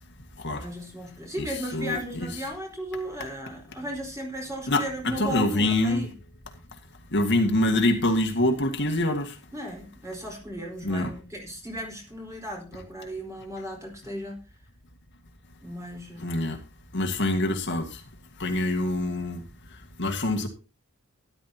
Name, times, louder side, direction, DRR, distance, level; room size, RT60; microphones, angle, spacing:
voice 1, 0.5-6.1 9.5-14.4 15.6-16.4, equal, 15° right, 4.4 m, -36 dB
voice 2, 1.7-2.3 4.7-6.1 7.1-9.3 10.8-11.1 16.2-16.6 16.9-18.0 18.4-19.4 20.0-20.5, left 1 dB, 55° left, 1.9 m, -25 dB
13.0 x 12.0 x 2.9 m
head